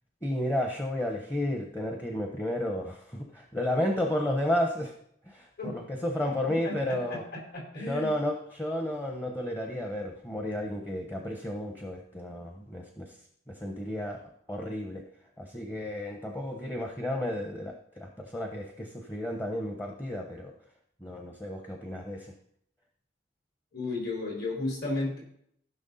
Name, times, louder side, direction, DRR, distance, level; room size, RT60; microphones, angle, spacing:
voice 1, 0.2-4.9 5.3-7.2 7.9-13.1 13.5-14.2 14.5-15.1 15.4-20.5 21.0-22.3, left 1 dB, 10° left, 2 dB, 0.9 m, -32 dB
voice 2, 6.4-7.2 7.5-8.1 23.7-25.2, left 2 dB, 60° left, -2 dB, 4.5 m, -33 dB
15.0 x 6.0 x 4.1 m, 0.69 s
head